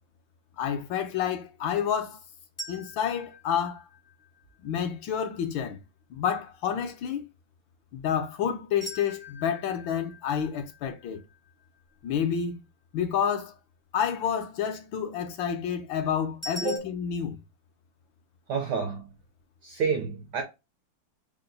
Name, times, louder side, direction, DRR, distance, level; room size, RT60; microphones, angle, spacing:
voice 1, 0.6-2.2 2.7-3.8 4.6-5.8 6.1-7.2 7.9-11.2 12.0-12.6 12.9-13.6 13.9-17.4, left 8 dB, 70° left, 1.3 m, -29 dB
sound 1, 2.6-4.7 8.8-11.9 16.4-16.8, equal, 30° left, 0.7 m, -43 dB
voice 2, 18.5-19.1 19.6-20.4, right 5 dB, 70° right, 1.0 m, -29 dB
3.8 x 2.2 x 3.9 m
omnidirectional pair, 2.4 m